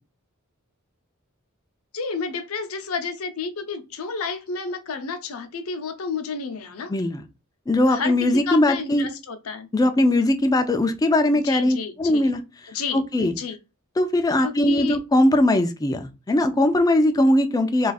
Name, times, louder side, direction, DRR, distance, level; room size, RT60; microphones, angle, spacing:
voice 1, 1.9-6.9 7.9-8.1 8.5-9.7 11.4-12.3 12.7-13.6 14.4-15.0, left 5 dB, 70° left, 0.6 m, -31 dB
voice 2, 6.9-7.2 7.7-9.1 9.7-12.4 12.9-13.3 14.0-17.9, left 1 dB, 15° left, 0.3 m, -20 dB
2.4 x 2.4 x 4.0 m
head